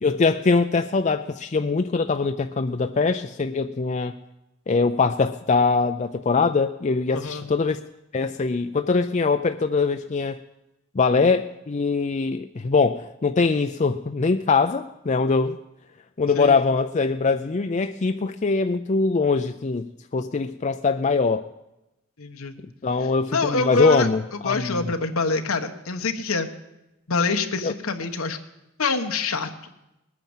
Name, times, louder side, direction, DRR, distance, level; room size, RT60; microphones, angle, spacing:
voice 1, 0.0-4.1 4.7-7.8 8.1-10.4 10.9-15.6 16.2-19.9 20.1-21.5 22.8-24.9 27.6-27.7, left 4 dB, 35° left, 8 dB, 0.5 m, -22 dB
voice 2, 7.1-7.5 16.3-16.6 22.2-22.5 23.3-24.1 24.4-26.5 27.1-28.4 28.8-29.5, left 3 dB, 85° left, 5 dB, 1.2 m, -25 dB
20.0 x 9.4 x 7.2 m, 0.92 s
head